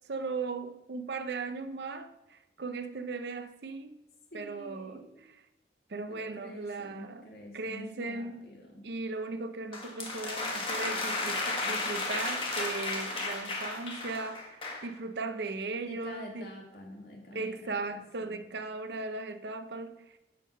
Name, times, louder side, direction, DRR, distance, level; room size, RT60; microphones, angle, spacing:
voice 1, 0.1-4.0 4.3-5.0 5.9-7.3 7.5-8.5 8.8-16.5 17.3-20.2, right 3 dB, 75° right, 0.6 m, -37 dB
voice 2, 4.3-5.2 6.1-8.9 15.9-18.4, left 1 dB, 65° left, 2.0 m, -48 dB
sound 1, 9.7-14.9, left 2 dB, 30° left, 1.2 m, -34 dB
9.4 x 3.8 x 6.3 m
head